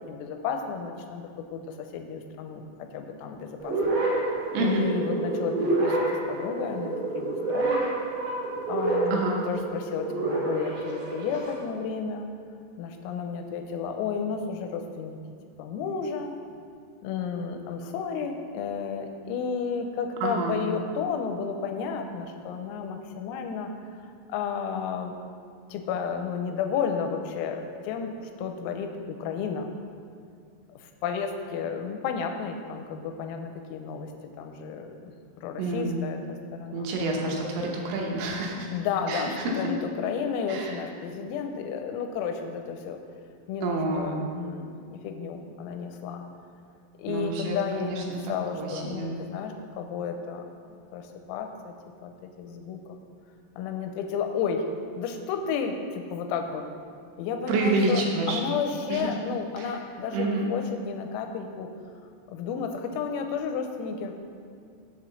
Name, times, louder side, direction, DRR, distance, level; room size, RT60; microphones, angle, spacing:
voice 1, 0.1-2.6 2.9-3.8 4.2-6.0 6.3-7.9 8.7-12.3 12.8-15.2 15.6-16.3 17.0-24.0 24.3-25.1 25.7-29.7 30.8-34.1 34.4-34.9 35.4-36.9 38.7-43.0 43.5-46.2 47.0-51.7 52.0-53.0 53.6-54.6 54.9-56.7 57.2-61.7 62.3-64.1, left 6 dB, 90° left, 5 dB, 3.3 m, -32 dB
sound 1, 3.6-11.6, right 2 dB, 60° right, 2.8 m, -28 dB
voice 2, 4.5-4.9 9.1-9.4 20.2-20.6 35.6-36.0 36.7-38.7 39.1-39.7 40.5-40.7 43.6-44.1 47.1-48.2 48.5-49.1 57.5-58.4 58.9-59.1 59.6-59.7 60.1-60.5, right 2 dB, 75° right, -1 dB, 3.4 m, -28 dB
7.5 x 5.0 x 6.9 m, 2.2 s
omnidirectional pair, 6.0 m